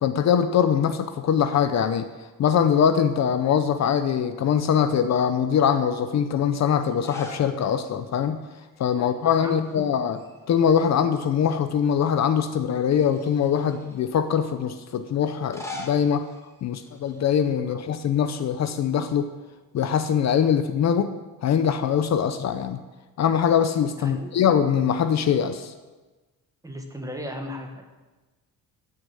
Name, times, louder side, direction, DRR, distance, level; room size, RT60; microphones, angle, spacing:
voice 1, 0.0-2.1 2.4-8.4 8.8-10.2 10.5-16.3 16.6-19.3 19.7-21.1 21.4-22.8 23.2-25.7, left 8 dB, 50° left, 10 dB, 0.7 m, -22 dB
sound 1, 6.9-7.5 7.9-8.0 9.3-9.8 10.1-11.3 11.8-11.9 12.8-14.0 15.3-17.5, left 2 dB, 10° left, 1.7 m, -42 dB
voice 2, 9.4-9.9 17.7-17.8 24.0-24.4 26.6-27.8, equal, 10° right, 3 dB, 1.4 m, -36 dB
14.0 x 6.8 x 8.8 m, 1.2 s
cardioid pair, 180°, 35 cm